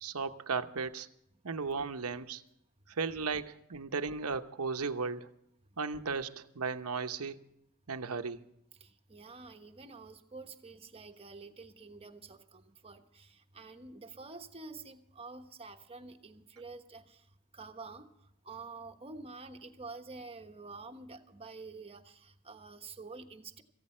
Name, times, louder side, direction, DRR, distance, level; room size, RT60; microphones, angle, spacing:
voice 1, 0.0-1.1 1.4-2.4 3.0-5.3 5.8-7.4 7.9-8.4, right 4 dB, 80° right, 9 dB, 0.9 m, -35 dB
voice 2, 8.7-17.3 17.5-18.1 18.4-23.6, right 3 dB, 25° right, 6 dB, 1.2 m, -48 dB
17.5 x 15.0 x 4.4 m, 0.77 s
head